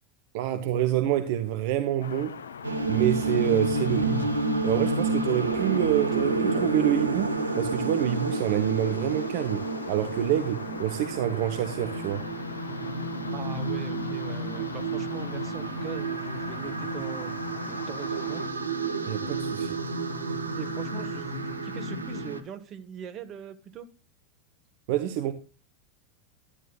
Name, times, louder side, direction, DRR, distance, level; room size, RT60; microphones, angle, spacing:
voice 1, 0.3-2.4 2.9-4.4 4.6-12.3 19.1-19.8 24.9-25.3, right 11 dB, 55° right, 0.8 m, -27 dB
sound 1, 2.0-18.5, left 7 dB, 70° left, 0.5 m, -42 dB
sound 2, 2.6-22.4, right 3 dB, 80° right, 0.9 m, -30 dB
voice 2, 13.3-17.3 17.6-18.4 20.5-23.9, right 7 dB, 35° right, 1.2 m, -41 dB
11.5 x 9.8 x 2.3 m
figure-of-eight pair, 85°, 0 cm